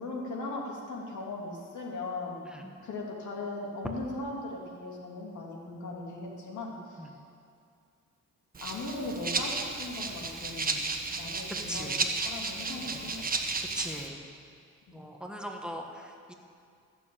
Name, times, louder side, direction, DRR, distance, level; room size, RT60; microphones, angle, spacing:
voice 1, 0.0-2.4 2.8-7.1 8.6-10.8 11.1-13.3 14.9-15.0, left 2 dB, 75° left, -2 dB, 2.9 m, -38 dB
Rattle (instrument), 8.5-14.1, right 3 dB, 30° right, 1.3 m, -33 dB
voice 2, 13.7-14.2 14.9-16.3, equal, 5° right, 1 dB, 1.4 m, -39 dB
15.0 x 7.0 x 8.8 m, 2.4 s
cardioid pair, 90°, 30 cm